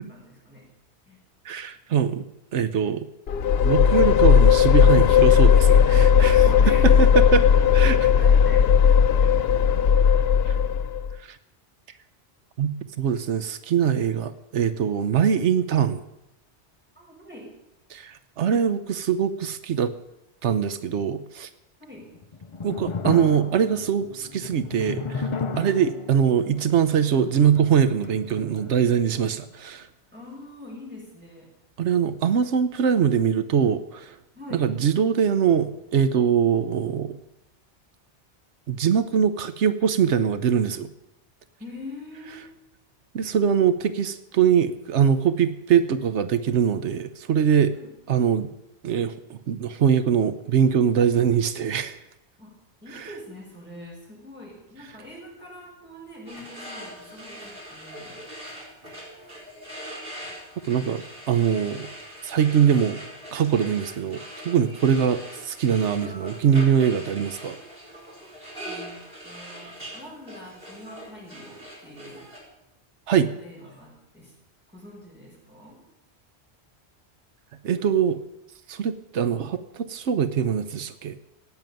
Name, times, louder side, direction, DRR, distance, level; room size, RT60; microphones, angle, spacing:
voice 1, 0.1-0.7 1.1-1.2 6.2-10.5 17.0-17.5 21.9-22.2 30.1-31.5 34.3-34.7 41.6-42.5 47.7-47.9 52.4-58.3 59.3-59.4 68.7-69.0 69.2-72.3 73.2-74.3 74.7-75.8, left 1 dB, 10° right, -4 dB, 7.1 m, -43 dB
voice 2, 1.4-2.3 2.5-3.0 3.6-6.4 6.8-7.4 7.7-8.1 11.2-11.4 12.6-12.7 13.0-16.0 17.9-19.9 20.4-21.5 22.6-25.3 25.6-29.9 31.8-34.2 34.5-37.2 38.7-40.9 43.1-47.7 48.1-48.5 48.8-52.0 52.9-53.1 60.7-61.9 62.2-63.0 63.3-67.6 73.1-73.3 77.6-78.2 78.7-81.2, right 8 dB, 90° right, 12 dB, 1.1 m, -22 dB
sound 1, 3.3-11.1, left 7 dB, 65° left, 0.9 m, -16 dB
sound 2, 22.0-29.2, left 4 dB, 35° left, 0.5 m, -34 dB
sound 3, 56.3-72.4, equal, 55° right, 4.9 m, -41 dB
16.5 x 9.2 x 9.1 m, 0.89 s
omnidirectional pair, 1.1 m